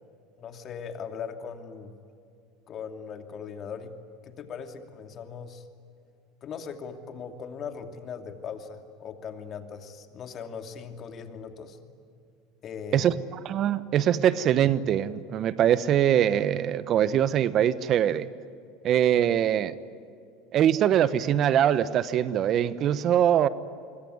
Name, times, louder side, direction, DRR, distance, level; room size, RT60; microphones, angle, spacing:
voice 1, 0.4-1.9 2.7-3.9 4.2-5.6 6.4-11.8 12.6-13.1, left 6 dB, 45° left, 6 dB, 2.8 m, -39 dB
voice 2, 12.9-18.3 18.8-19.7 20.5-23.5, right 10 dB, 50° right, 15 dB, 1.1 m, -23 dB
26.5 x 23.5 x 9.6 m, 2.4 s
hypercardioid pair, 90°, 0 cm